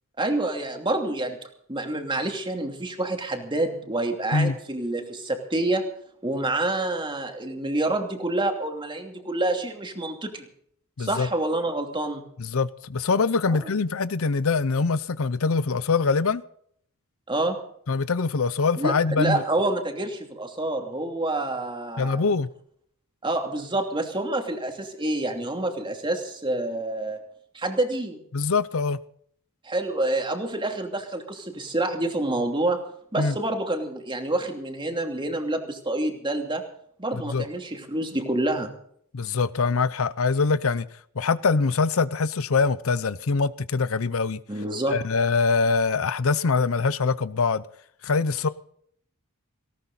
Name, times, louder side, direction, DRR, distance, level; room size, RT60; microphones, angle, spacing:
voice 1, 0.2-1.4 1.7-5.9 6.2-10.5 11.0-12.2 13.5-13.6 17.3-17.6 18.8-22.2 23.2-27.2 27.5-28.2 29.6-32.8 33.1-36.6 37.0-38.7 44.5-45.0, right 2 dB, 20° right, 2.8 m, -27 dB
voice 2, 12.4-16.4 17.9-19.4 22.0-22.5 28.3-29.0 33.2-33.3 37.1-37.5 39.1-40.9 41.2-44.4 44.9-47.6 48.0-48.5, left 4 dB, 65° left, 0.6 m, -23 dB
19.0 x 17.5 x 4.1 m
head